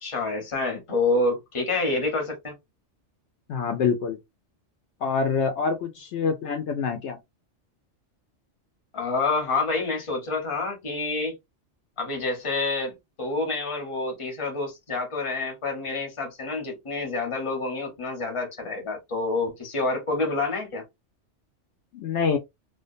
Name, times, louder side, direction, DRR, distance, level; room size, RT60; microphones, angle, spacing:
voice 1, 0.0-2.5 8.9-11.4 12.0-20.8, left 3 dB, 30° left, 0.9 m, -28 dB
voice 2, 3.5-4.2 5.0-7.2 21.9-22.4, left 5 dB, 75° left, 0.9 m, -26 dB
2.5 x 2.2 x 2.5 m
omnidirectional pair, 1.2 m